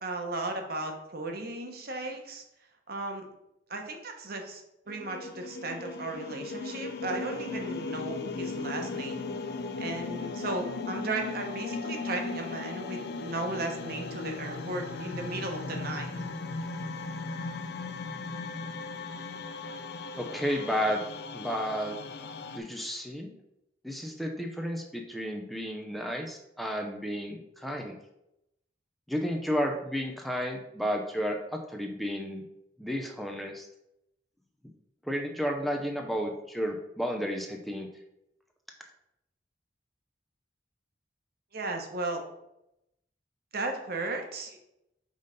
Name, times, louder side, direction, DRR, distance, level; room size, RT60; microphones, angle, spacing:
voice 1, 0.0-2.4 2.9-3.3 3.7-4.6 4.9-9.3 9.8-16.1 41.5-42.2 43.5-44.6, right 2 dB, 55° right, 3 dB, 1.1 m, -35 dB
sound 1, 4.9-22.6, left 3 dB, 60° left, 0.5 m, -37 dB
voice 2, 20.2-21.0 21.3-22.0 22.5-23.3 23.8-28.0 29.1-32.4 32.8-33.7 35.0-37.9, equal, ahead, 2 dB, 0.5 m, -32 dB
5.2 x 4.0 x 5.3 m, 0.84 s
head